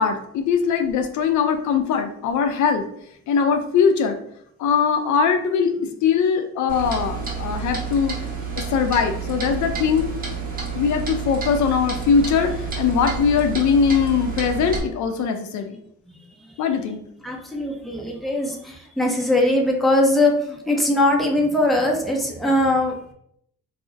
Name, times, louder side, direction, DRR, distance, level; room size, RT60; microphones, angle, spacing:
voice 1, 0.0-2.8 3.3-4.2 4.6-8.2 8.6-10.1 10.7-15.8 16.6-17.0, left 6 dB, 75° left, 6 dB, 0.5 m, -21 dB
Clock, 6.7-14.8, right 5 dB, 30° right, 0.8 m, -29 dB
voice 2, 17.2-23.1, left 1 dB, ahead, -1 dB, 0.6 m, -21 dB
2.4 x 2.0 x 3.7 m, 0.70 s
cardioid pair, 90°, 30 cm